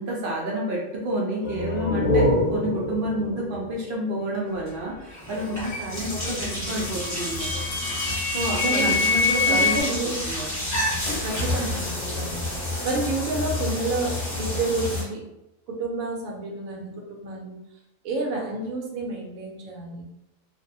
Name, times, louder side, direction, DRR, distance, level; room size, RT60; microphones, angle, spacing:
voice 1, 0.0-7.6 8.3-10.5, right 1 dB, 65° right, -2 dB, 0.5 m, -29 dB
sound 1, 1.4-4.9, left 1 dB, 45° left, 1.0 m, -26 dB
sound 2, 4.5-4.7 5.1-15.0, left 1 dB, 15° left, 0.7 m, -30 dB
voice 2, 6.1-6.6 8.6-9.0 9.5-10.2 11.2-12.4 12.8-15.2 15.7-17.6 18.0-20.0, right 2 dB, 85° right, 0 dB, 1.1 m, -30 dB
sound 3, 6.6-9.8, left 4 dB, 70° left, 0.3 m, -25 dB
2.6 x 2.0 x 2.6 m, 0.89 s
omnidirectional pair, 1.4 m